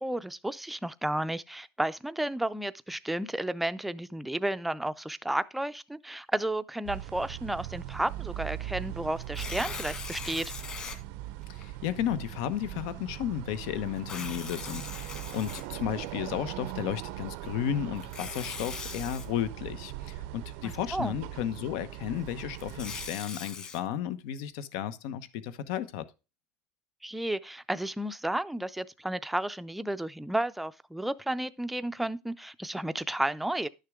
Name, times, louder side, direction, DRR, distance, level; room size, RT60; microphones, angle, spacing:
voice 1, 0.0-10.5 20.6-21.1 27.0-33.7, right 1 dB, 5° right, 0.4 m, -32 dB
sound 1, 6.8-23.1, right 15 dB, 75° right, 0.5 m, -40 dB
Tearing, 9.2-11.0 11.6-11.7 14.0-16.1 18.0-19.3 22.4-23.8, left 5 dB, 30° left, 1.7 m, -40 dB
voice 2, 11.5-26.1, left 10 dB, 80° left, 1.0 m, -33 dB
11.5 x 6.6 x 3.6 m
cardioid pair, 160°, 3 cm